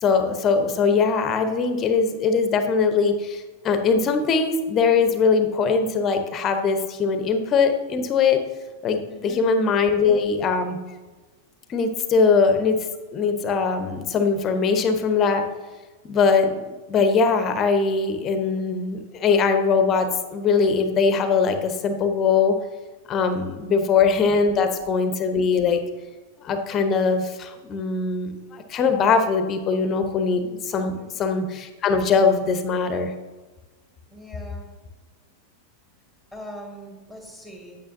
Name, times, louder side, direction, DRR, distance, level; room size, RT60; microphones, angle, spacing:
voice 1, 0.0-8.4 8.8-10.8 11.7-12.8 13.1-15.4 16.0-22.5 23.1-25.8 26.4-33.1, left 5 dB, 30° left, 7 dB, 0.9 m, -21 dB
voice 2, 9.1-9.5 31.0-31.1 34.1-34.7 36.3-37.8, equal, 5° right, 0 dB, 1.8 m, -41 dB
8.8 x 8.7 x 2.7 m, 1.2 s
figure-of-eight pair, 90°, 0 cm